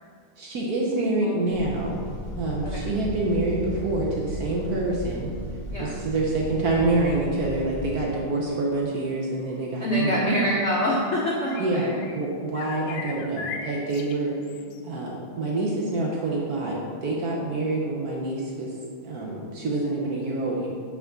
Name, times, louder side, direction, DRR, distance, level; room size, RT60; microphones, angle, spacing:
voice 1, 0.4-2.0 2.4-5.3 5.8-10.3 11.6-14.3 14.9-18.7 19.0-20.7, right 2 dB, 60° right, -3 dB, 1.1 m, -27 dB
voice 2, 1.0-1.4 2.6-2.8 5.7-5.9 9.8-11.9, equal, 65° left, -5 dB, 0.6 m, -25 dB
sound 1, 1.5-8.0, equal, 10° left, 1.5 m, -35 dB
sound 2, 11.0-12.3 12.6-14.8, left 5 dB, 85° left, 1.5 m, -38 dB
5.8 x 3.7 x 5.9 m, 2.1 s
omnidirectional pair, 2.3 m